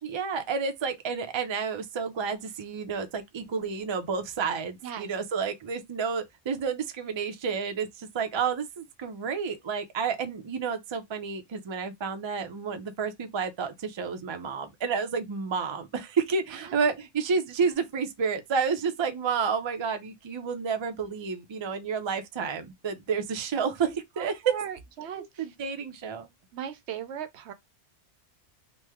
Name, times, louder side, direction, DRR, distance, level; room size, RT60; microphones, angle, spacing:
voice 1, 0.0-24.6 25.2-26.3, right 5 dB, 50° right, 0.3 m, -30 dB
voice 2, 24.2-25.5 26.5-27.5, right 8 dB, 70° right, 0.8 m, -38 dB
3.0 x 2.0 x 3.4 m
omnidirectional pair, 1.2 m